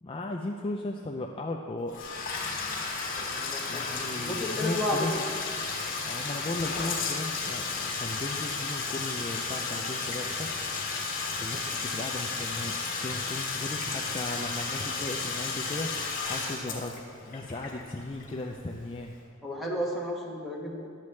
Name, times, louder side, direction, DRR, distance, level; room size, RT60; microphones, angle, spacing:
voice 1, 0.0-2.1 3.7-5.1 6.0-10.5 11.4-12.8 13.0-15.9 16.3-19.1, left 2 dB, 25° left, 0 dB, 0.4 m, -36 dB
Bathtub (filling or washing), 1.9-18.6, left 4 dB, 40° left, 1.4 m, -33 dB
voice 2, 3.3-5.2 19.4-20.9, left 1 dB, ahead, -3 dB, 1.1 m, -32 dB
11.5 x 8.2 x 3.2 m, 2.2 s
head